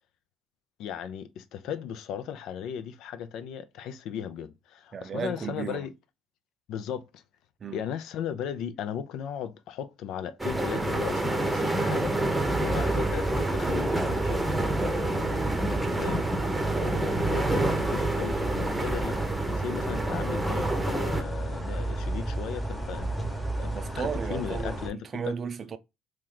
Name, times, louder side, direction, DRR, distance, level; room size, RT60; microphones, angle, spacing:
voice 1, 0.8-5.9 6.7-7.2 7.7-12.1 12.6-14.5 16.0-16.2 16.8-19.2 19.5-25.0, left 8 dB, 70° left, 0.5 m, -36 dB
voice 2, 4.9-5.9 7.6-7.8 15.7-15.9 16.7-17.0 23.7-25.8, right 6 dB, 40° right, 0.5 m, -35 dB
sound 1, 10.4-21.2, right 2 dB, 10° right, 0.8 m, -28 dB
sound 2, 10.9-13.9, left 1 dB, 35° left, 0.8 m, -44 dB
sound 3, 12.4-24.9, right 2 dB, 5° left, 1.1 m, -33 dB
3.1 x 3.1 x 3.8 m
supercardioid pair, 90°, 0 cm